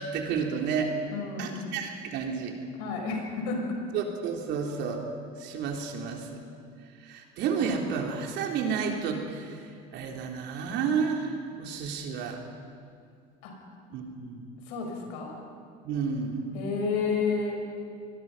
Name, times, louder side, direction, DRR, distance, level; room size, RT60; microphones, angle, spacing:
voice 1, 0.0-0.9 1.4-2.5 3.9-5.0 5.4-6.3 7.0-9.6 9.9-11.3 11.6-12.4 13.9-14.4 15.8-16.5, right 6 dB, 65° right, 2 dB, 3.6 m, -31 dB
voice 2, 1.1-1.6 2.8-3.6 13.4-13.5 14.7-15.4 16.5-17.6, left 5 dB, 80° left, 2 dB, 5.7 m, -30 dB
25.5 x 21.0 x 5.7 m, 2.3 s
supercardioid pair, 95°, 19 cm